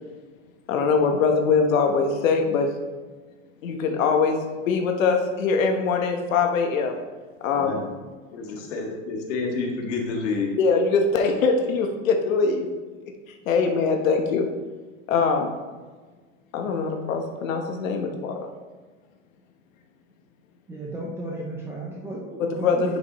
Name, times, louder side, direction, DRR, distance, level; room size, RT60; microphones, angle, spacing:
voice 1, 0.7-2.7 3.6-4.4 4.6-7.0 7.4-7.8 10.6-12.7 13.5-14.5 15.1-15.5 16.5-18.5 22.4-23.0, left 5 dB, 90° left, 4 dB, 1.2 m, -22 dB
voice 2, 7.5-7.8 8.3-10.6, left 4 dB, 65° left, 0 dB, 1.9 m, -29 dB
voice 3, 20.7-23.0, right 1 dB, 5° right, -3 dB, 0.4 m, -33 dB
10.5 x 5.3 x 3.1 m, 1.4 s
supercardioid pair, 160°, 39 cm